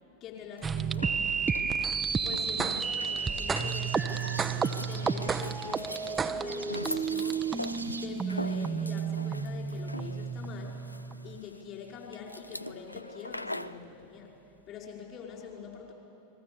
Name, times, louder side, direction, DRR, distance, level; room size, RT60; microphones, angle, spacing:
voice 1, 0.2-1.1 2.2-7.5 8.0-10.8 11.2-14.3 14.7-15.9, left 6 dB, 35° left, -1 dB, 5.5 m, -44 dB
sound 1, 0.6-13.8, left 1 dB, 85° left, 0.6 m, -42 dB
sound 2, 0.6-11.4, right 6 dB, 15° right, 0.8 m, -31 dB
sound 3, 2.0-8.1, right 3 dB, 85° right, 1.8 m, -46 dB
29.5 x 21.5 x 7.2 m, 2.7 s
figure-of-eight pair, 90°, 0 cm